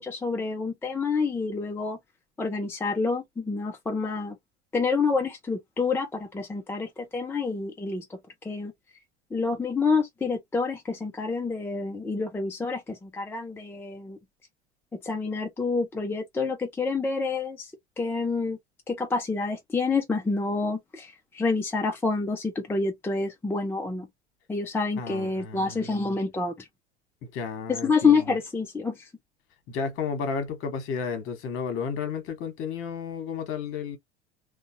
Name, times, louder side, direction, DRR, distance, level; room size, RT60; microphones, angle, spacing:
voice 1, 0.0-2.0 2.4-4.4 4.7-8.7 9.3-14.2 15.0-17.7 18.0-18.6 18.9-24.1 24.5-26.7 27.7-29.1, left 4 dB, 5° left, 0.6 m, -28 dB
voice 2, 25.0-26.0 27.2-28.4 29.7-34.0, left 5 dB, 40° left, 1.3 m, -32 dB
3.7 x 2.2 x 2.7 m
figure-of-eight pair, 80°, 33 cm